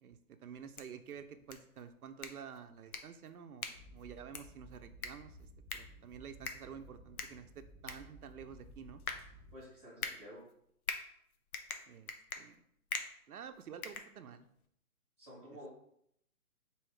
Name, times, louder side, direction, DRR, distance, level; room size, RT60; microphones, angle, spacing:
voice 1, 0.0-9.0 11.9-12.6 13.3-14.5 15.4-15.7, right 7 dB, 80° right, 8 dB, 0.6 m, -50 dB
sound 1, 0.5-14.7, left 5 dB, 75° left, 0.7 m, -46 dB
sound 2, 3.7-9.6, right 1 dB, 35° left, 1.2 m, -56 dB
voice 2, 9.5-10.4 15.2-15.7, equal, 5° left, -8 dB, 1.2 m, -51 dB
4.6 x 2.8 x 3.2 m, 0.72 s
hypercardioid pair, 160°, 44 cm